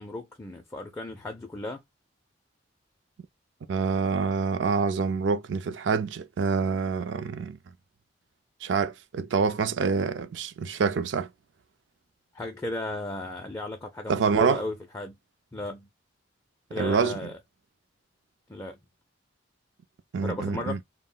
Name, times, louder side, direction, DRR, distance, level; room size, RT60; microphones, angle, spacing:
voice 1, 0.0-1.8 12.3-15.2 15.5-15.9 16.7-17.4 18.5-18.8 20.2-20.8, left 2 dB, 15° left, 0.4 m, -35 dB
voice 2, 3.7-7.6 8.6-11.3 14.1-14.6 16.8-17.2 20.1-20.8, right 5 dB, 70° right, 0.4 m, -26 dB
2.3 x 2.1 x 3.6 m
head